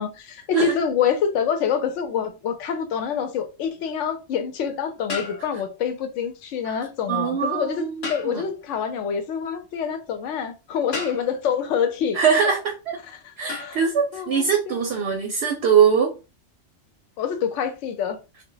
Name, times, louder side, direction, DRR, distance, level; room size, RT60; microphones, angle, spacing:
voice 1, 0.0-12.6 13.1-13.8 14.1-14.8 17.2-18.2, left 7 dB, 85° left, 0.9 m, -26 dB
sound 1, 2.6-2.8 5.1-5.9 8.0-8.6 10.9-11.6 13.5-13.9, left 4 dB, 60° left, 1.0 m, -34 dB
voice 2, 7.1-8.4 12.1-13.0 13.4-16.1, right 6 dB, 65° right, 0.8 m, -22 dB
2.2 x 2.1 x 3.7 m
omnidirectional pair, 1.2 m